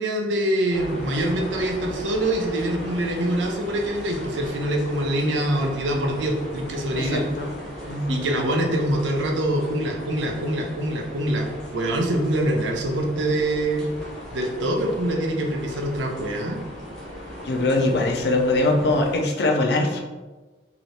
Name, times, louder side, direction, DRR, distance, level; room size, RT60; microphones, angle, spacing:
voice 1, 0.0-7.3 8.1-11.5 11.7-13.9 14.3-16.6, right 1 dB, 80° right, 2 dB, 0.5 m, -24 dB
sound 1, 0.7-19.2, equal, 5° left, 0.7 m, -37 dB
voice 2, 7.0-7.5 7.9-8.2 17.4-20.0, left 2 dB, 60° left, 2 dB, 0.4 m, -22 dB
2.8 x 2.6 x 3.2 m, 1.2 s
head